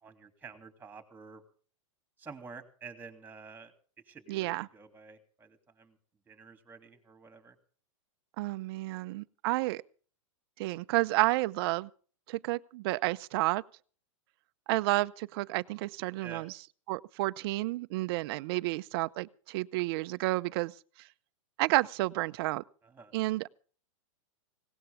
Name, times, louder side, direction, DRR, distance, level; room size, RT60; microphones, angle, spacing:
voice 1, 0.0-1.4 2.2-3.7 4.1-6.0 6.3-7.6 16.2-16.4 22.8-23.1, right 5 dB, 10° right, 2.9 m, -49 dB
voice 2, 4.3-4.7 8.4-9.8 10.6-11.9 12.3-13.6 14.7-16.5 16.9-20.7 21.6-22.6 23.1-23.5, right 20 dB, 45° right, 0.7 m, -30 dB
19.0 x 17.5 x 3.6 m
hypercardioid pair, 135°, 17 cm